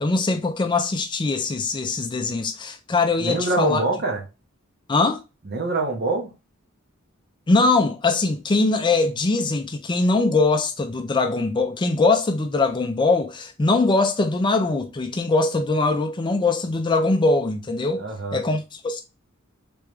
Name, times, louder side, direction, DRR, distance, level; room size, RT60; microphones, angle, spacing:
voice 1, 0.0-3.8 4.9-5.2 7.5-18.0 18.3-19.0, left 3 dB, 20° left, 0.4 m, -22 dB
voice 2, 3.2-4.2 5.4-6.3 18.0-18.4, right 3 dB, 50° right, 1.1 m, -25 dB
3.4 x 3.2 x 3.3 m
head